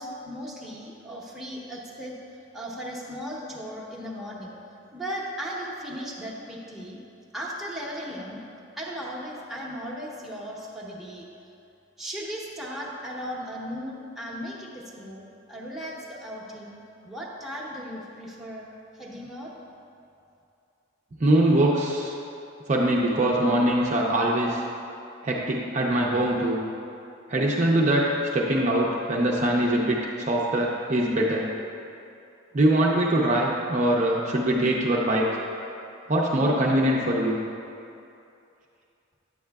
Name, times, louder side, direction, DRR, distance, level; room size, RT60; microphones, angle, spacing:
voice 1, 0.0-2.1 2.5-4.5 4.9-7.0 7.3-8.4 8.8-11.3 12.0-18.7 18.9-19.5, equal, ahead, -5 dB, 0.8 m, -37 dB
voice 2, 21.2-22.1 22.7-24.6 25.2-26.6 27.3-31.5 32.5-35.3 36.1-37.4, right 1 dB, 35° right, -2 dB, 0.5 m, -23 dB
9.6 x 7.5 x 2.3 m, 2.7 s
head